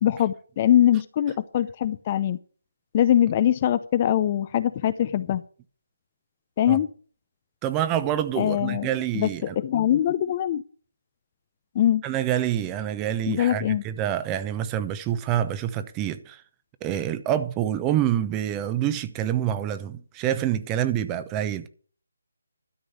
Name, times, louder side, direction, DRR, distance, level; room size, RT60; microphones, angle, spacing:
voice 1, 0.0-2.4 2.9-5.4 6.6-6.9 8.4-8.9 9.1-9.3 9.6-10.6 11.7-12.0 13.3-13.8, left 11 dB, 30° left, 0.6 m, -22 dB
voice 2, 7.6-9.5 12.0-16.4 16.8-21.7, right 11 dB, 15° right, 0.8 m, -27 dB
12.5 x 5.2 x 8.7 m
figure-of-eight pair, 160°, 0 cm